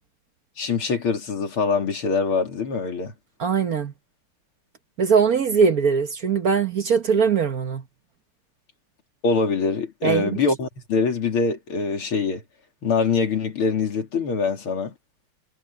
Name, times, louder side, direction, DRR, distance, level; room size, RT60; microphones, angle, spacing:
voice 1, 0.6-3.1 9.2-12.4 12.8-14.9, left 4 dB, 80° left, 3.7 m, -24 dB
voice 2, 3.4-3.9 5.0-7.8 10.0-10.4, right 6 dB, 50° right, 1.4 m, -21 dB
omnidirectional pair, 2.3 m